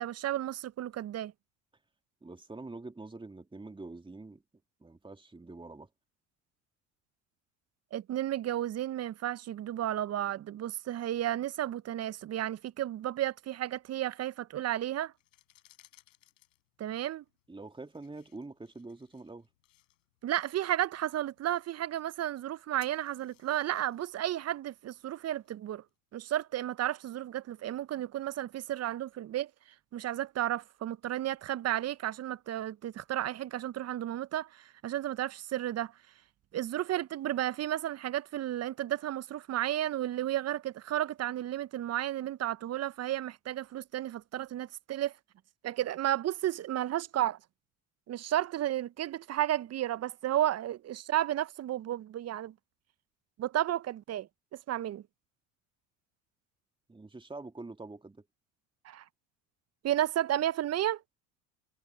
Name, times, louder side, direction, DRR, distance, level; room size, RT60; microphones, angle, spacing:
voice 1, 0.0-1.3 7.9-15.1 16.8-17.2 20.2-25.8 26.1-29.5 29.9-35.9 36.5-45.1 45.6-47.4 48.1-52.5 53.4-55.0 58.8-59.0 59.8-61.0, right 12 dB, 40° right, 0.9 m, -33 dB
voice 2, 2.2-4.4 4.8-5.9 17.5-19.5 56.9-58.3, right 3 dB, 15° right, 2.7 m, -45 dB
sound 1, 15.1-25.9, left 16 dB, 80° left, 6.6 m, -66 dB
hypercardioid pair, 70°, 38 cm